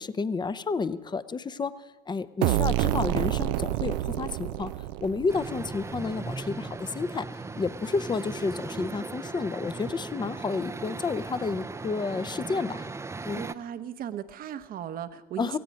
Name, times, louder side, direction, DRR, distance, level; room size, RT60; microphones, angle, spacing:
voice 1, 0.0-1.7 2.1-4.7 5.0-7.3 7.6-12.9 13.2-13.4 15.4-15.6, left 4 dB, 25° left, 15 dB, 0.7 m, -30 dB
sound 1, 2.4-6.1, right 15 dB, 75° right, 0.4 m, -28 dB
sound 2, 5.3-13.5, right 3 dB, 15° right, 0.6 m, -38 dB
voice 2, 13.4-15.6, right 9 dB, 55° right, 12 dB, 0.9 m, -37 dB
16.5 x 16.0 x 5.2 m, 1.3 s
hypercardioid pair, 70°, 18 cm